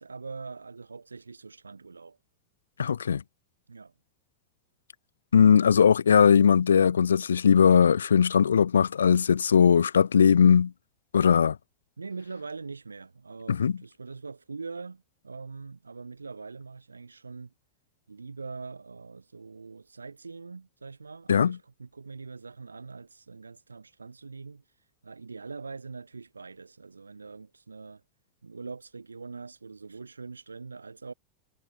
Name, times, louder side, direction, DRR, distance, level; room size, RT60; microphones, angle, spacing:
voice 1, 0.0-2.2 3.7-3.9 12.0-17.5 18.1-24.6 25.0-28.0 28.4-31.1, right 4 dB, 75° right, 4.8 m, -43 dB
voice 2, 2.8-3.2 5.3-10.7 11.1-11.6 13.5-13.7 21.3-21.6, left 7 dB, 70° left, 0.5 m, -19 dB
figure-of-eight pair, 90°, 0 cm